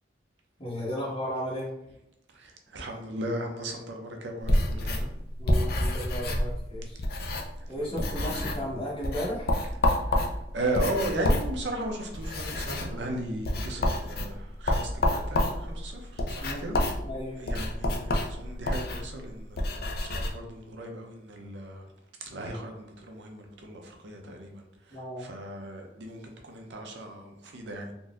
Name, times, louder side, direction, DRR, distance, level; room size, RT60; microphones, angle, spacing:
voice 1, 0.6-1.7 5.4-7.0 7.7-9.5 16.4-16.7 17.0-17.4 24.9-25.3, equal, 30° left, 1.1 m, -34 dB
voice 2, 2.3-5.2 7.8-7.9 8.2-8.5 9.9-16.7 17.4-21.8 22.2-27.9, right 1 dB, 70° right, 0.6 m, -36 dB
sound 1, 4.4-7.7 7.9-8.7 9.0-20.3, left 1 dB, 55° left, 0.5 m, -29 dB
3.9 x 2.6 x 2.4 m
head